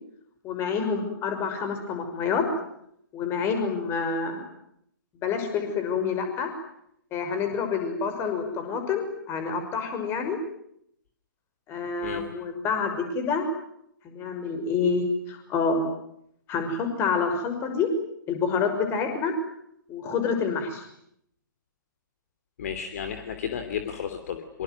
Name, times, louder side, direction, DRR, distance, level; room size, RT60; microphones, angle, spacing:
voice 1, 0.4-2.4 3.1-4.4 5.2-6.5 7.1-10.4 11.7-13.4 14.0-15.8 16.5-17.9 18.3-19.3 19.9-20.8, left 5 dB, 20° left, 7 dB, 6.2 m, -27 dB
voice 2, 22.6-24.6, left 8 dB, 45° left, 8 dB, 3.0 m, -33 dB
26.0 x 24.0 x 9.6 m, 0.74 s
figure-of-eight pair, 125°, 11 cm